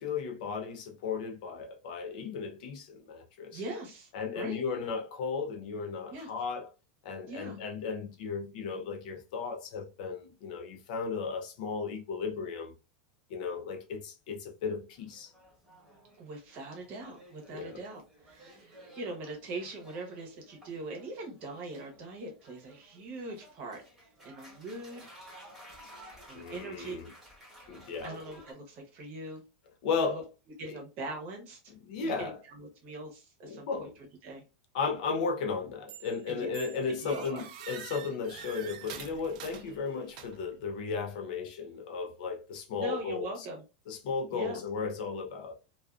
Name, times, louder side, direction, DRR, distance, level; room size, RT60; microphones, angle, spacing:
voice 1, 0.0-3.6 4.1-6.7 7.0-12.7 13.3-15.3 17.5-17.7 26.3-27.1 27.7-28.2 29.8-30.2 31.9-32.4 33.4-33.9 34.7-43.4 43.9-45.6, left 5 dB, 55° left, 0.6 m, -35 dB
voice 2, 3.5-4.1 4.3-4.6 6.1-6.3 7.3-7.6 16.2-23.8 24.2-25.1 26.3-27.0 28.0-29.4 30.1-30.2 30.6-31.6 32.0-34.4 36.3-37.4 42.7-43.6 44.3-44.6, right 2 dB, 30° right, 0.8 m, -41 dB
sound 1, 14.8-28.5, right 1 dB, 5° right, 1.0 m, -55 dB
sound 2, 35.9-36.2 36.5-40.6, right 9 dB, 50° right, 0.4 m, -46 dB
2.4 x 2.3 x 2.4 m
supercardioid pair, 170°, 5 cm